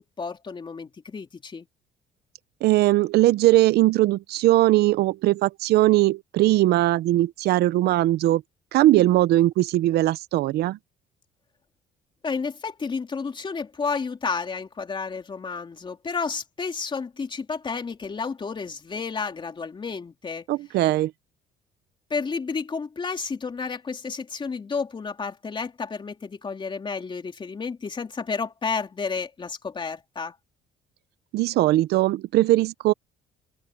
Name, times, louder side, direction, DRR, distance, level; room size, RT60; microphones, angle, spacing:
voice 1, 0.0-1.7 12.2-20.4 22.1-30.4, left 5 dB, 30° left, 3.6 m, -31 dB
voice 2, 2.6-8.4 8.7-10.8 20.5-21.1 31.3-32.9, right 16 dB, 75° right, 0.7 m, -20 dB
open air
cardioid pair, 110°, 17 cm